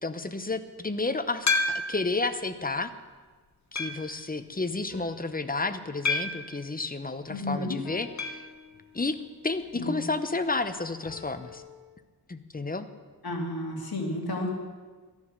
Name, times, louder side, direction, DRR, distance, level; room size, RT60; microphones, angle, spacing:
voice 1, 0.0-2.9 3.7-8.5 8.9-9.2 9.4-11.6 12.3-12.9, left 3 dB, 20° left, 10 dB, 0.8 m, -31 dB
sound 1, 1.5-2.2 2.8-2.9 3.8-4.2 6.1-6.5 8.2-8.5 8.7-8.8 9.1-9.2 11.2-11.3, left 3 dB, 45° left, 1.2 m, -28 dB
sound 2, 4.9-7.3 7.8-9.4 11.0-11.7, left 5 dB, 80° left, 3.0 m, -50 dB
voice 2, 7.3-7.8 9.8-10.0 13.2-14.5, left 1 dB, 60° left, 0 dB, 2.6 m, -32 dB
13.5 x 10.5 x 6.6 m, 1.4 s
wide cardioid pair, 100°, 41 cm